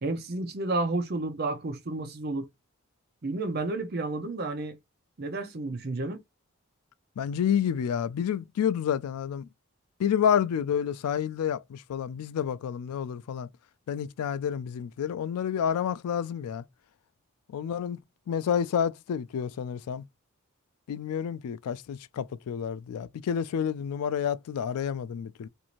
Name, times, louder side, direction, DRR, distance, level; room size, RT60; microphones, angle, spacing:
voice 1, 0.0-2.5 3.2-4.8 5.2-6.2, right 2 dB, 45° right, 0.5 m, -31 dB
voice 2, 7.2-9.5 10.0-13.5 13.9-16.6 17.5-20.0 20.9-25.5, left 8 dB, 85° left, 0.3 m, -29 dB
2.6 x 2.5 x 2.9 m
head